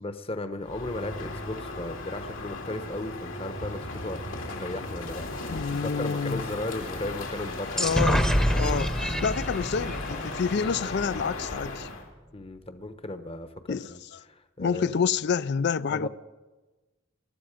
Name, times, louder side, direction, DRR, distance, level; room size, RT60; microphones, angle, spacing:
voice 1, 0.0-4.2 4.5-8.0 8.5-8.8 12.3-14.0 14.3-15.0 15.9-16.1, left 2 dB, 30° left, 0.9 m, -36 dB
Crow, 0.6-12.1, left 2 dB, 80° left, 2.7 m, -36 dB
voice 2, 5.5-6.4 7.8-8.3 8.6-11.9 13.7-13.9 14.6-16.1, left 6 dB, 60° left, 0.4 m, -28 dB
sound 1, 7.8-11.4, equal, 5° left, 0.8 m, -27 dB
21.5 x 13.0 x 5.0 m
head